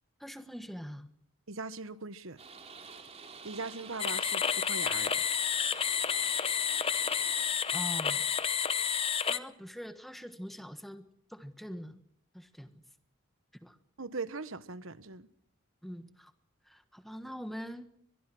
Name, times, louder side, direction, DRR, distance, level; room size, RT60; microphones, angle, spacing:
voice 1, 0.2-1.1 7.7-8.7 9.2-12.0 12.3-12.8 13.6-13.8 15.8-16.3 16.6-17.9, equal, ahead, 1.4 m, -44 dB
voice 2, 1.5-2.4 3.4-5.2 14.0-15.3, right 3 dB, 75° right, 1.2 m, -40 dB
sound 1, 2.4-7.5, right 5 dB, 30° right, 2.8 m, -50 dB
sound 2, 4.0-9.4, left 7 dB, 25° left, 0.8 m, -30 dB
22.5 x 22.5 x 6.2 m
head